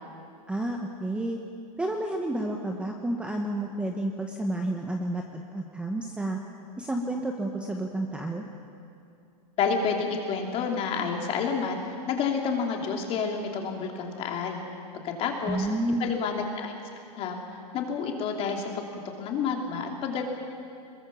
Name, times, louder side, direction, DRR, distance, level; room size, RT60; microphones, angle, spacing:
voice 1, 0.5-1.4 1.8-6.4 6.8-8.4 15.5-16.1, right 1 dB, 5° right, 2 dB, 1.1 m, -30 dB
voice 2, 9.6-11.7 12.1-14.6 15.0-15.7 16.0-16.7 17.2-17.4 17.7-18.8 19.2-20.2, left 5 dB, 30° left, 2 dB, 3.0 m, -29 dB
22.0 x 21.5 x 7.1 m, 2.5 s
supercardioid pair, 155°, 20 cm